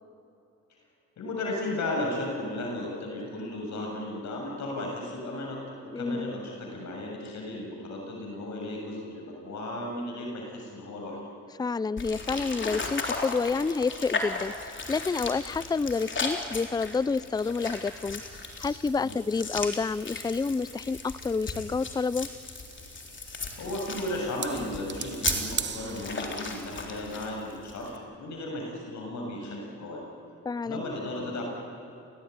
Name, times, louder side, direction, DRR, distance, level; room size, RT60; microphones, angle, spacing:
voice 1, 1.2-11.2 19.0-19.2 23.6-30.0 30.6-31.4, left 1 dB, 65° left, 0 dB, 7.0 m, -35 dB
voice 2, 5.9-6.3 11.6-18.2 18.6-22.3 30.4-30.8, left 4 dB, 15° left, 19 dB, 0.5 m, -29 dB
sound 1, 12.0-28.0, left 3 dB, 40° left, 3.7 m, -36 dB
sound 2, 17.4-26.8, right 6 dB, 35° right, 1.2 m, -40 dB
29.5 x 18.0 x 9.6 m, 2.9 s
cardioid pair, 90°, 30 cm